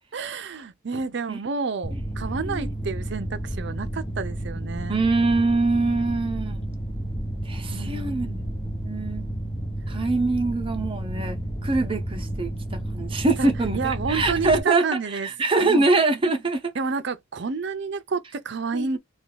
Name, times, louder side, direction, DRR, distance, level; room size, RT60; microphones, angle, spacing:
voice 1, 0.1-5.0 7.7-8.4 13.4-15.3 15.6-15.9 16.7-19.0, right 4 dB, 60° right, 0.5 m, -30 dB
Mechanical fan, 1.8-14.6, right 1 dB, 25° left, 0.8 m, -31 dB
voice 2, 4.9-6.6 7.5-8.3 8.8-9.3 9.9-16.7 18.7-19.0, right 3 dB, 25° right, 0.7 m, -24 dB
2.6 x 2.3 x 3.8 m
head